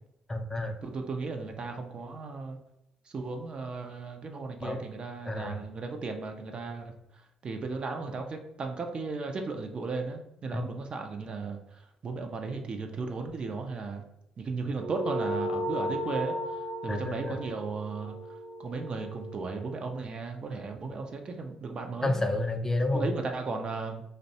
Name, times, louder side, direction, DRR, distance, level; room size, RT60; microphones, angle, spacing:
voice 1, 0.3-0.8 4.6-4.8 5.3-5.6 10.5-10.6 16.9-17.4 22.0-23.1, left 2 dB, 20° left, 5 dB, 0.4 m, -30 dB
voice 2, 0.8-2.6 3.1-14.0 14.4-22.2 22.9-24.0, right 4 dB, 45° right, 4 dB, 0.4 m, -36 dB
sound 1, 14.8-19.6, equal, 70° right, 1.0 m, -35 dB
2.5 x 2.1 x 2.7 m, 0.86 s
hypercardioid pair, 50°, 2 cm